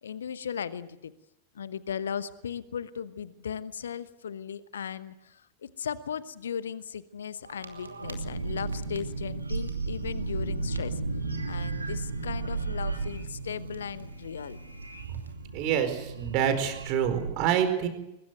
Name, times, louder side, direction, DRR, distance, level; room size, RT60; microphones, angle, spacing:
voice 1, 0.0-1.1 1.5-11.0 11.4-14.6, left 7 dB, 65° left, 16 dB, 1.1 m, -37 dB
sound 1, 7.5-17.3, right 3 dB, 80° right, 2.6 m, -34 dB
voice 2, 15.5-17.9, right 9 dB, 45° right, 8 dB, 4.5 m, -27 dB
23.5 x 21.0 x 8.1 m, 0.86 s
figure-of-eight pair, 90°, 0 cm